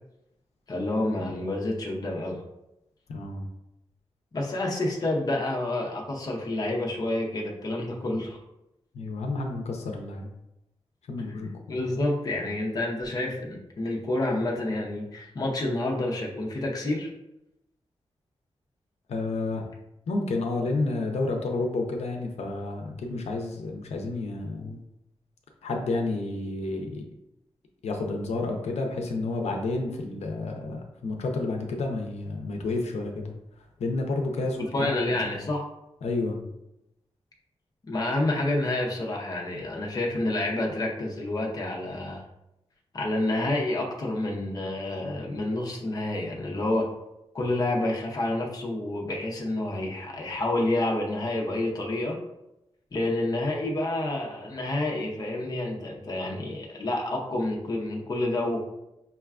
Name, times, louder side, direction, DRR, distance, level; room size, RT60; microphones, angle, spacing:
voice 1, 0.7-2.4 4.3-8.4 11.3-17.1 34.7-35.6 37.8-42.2 42.9-46.9 47.3-52.2 52.9-58.6, left 1 dB, 35° left, -1 dB, 0.6 m, -29 dB
voice 2, 3.1-3.4 8.9-10.3 11.1-11.8 19.1-19.6 20.1-24.8 25.6-27.0 27.8-33.3 33.8-35.4 36.0-36.4, left 2 dB, 85° left, 2 dB, 0.5 m, -30 dB
5.4 x 2.2 x 2.3 m, 0.88 s
wide cardioid pair, 175°, 11 cm